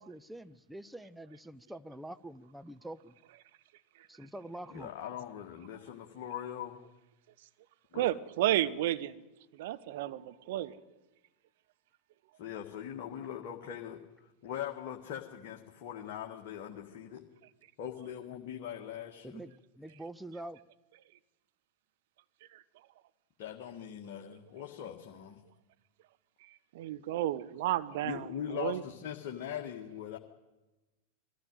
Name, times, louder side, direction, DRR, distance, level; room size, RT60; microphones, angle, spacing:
voice 1, 0.0-3.2 4.1-4.9 19.2-20.6, right 1 dB, 5° right, 0.7 m, -45 dB
voice 2, 4.7-6.8 7.9-8.1 12.4-17.3 17.8-19.4 23.4-25.4 28.0-30.2, left 10 dB, 45° left, 1.7 m, -41 dB
voice 3, 7.9-9.2 9.5-10.7 22.5-22.6 26.7-28.8, right 13 dB, 55° right, 1.0 m, -32 dB
21.0 x 14.5 x 9.2 m
figure-of-eight pair, 90°, 0 cm